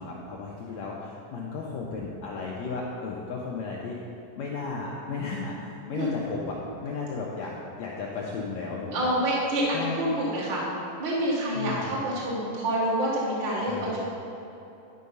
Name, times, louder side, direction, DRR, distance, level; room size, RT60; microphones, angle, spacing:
voice 1, 0.0-4.0 4.4-6.5 6.8-9.1 9.7-10.0 11.5-12.0 13.6-14.0, left 4 dB, 90° left, -3 dB, 1.5 m, -34 dB
voice 2, 8.9-10.6 11.0-14.0, right 1 dB, 55° right, -7 dB, 1.3 m, -27 dB
11.0 x 4.7 x 5.4 m, 3.0 s
omnidirectional pair, 4.0 m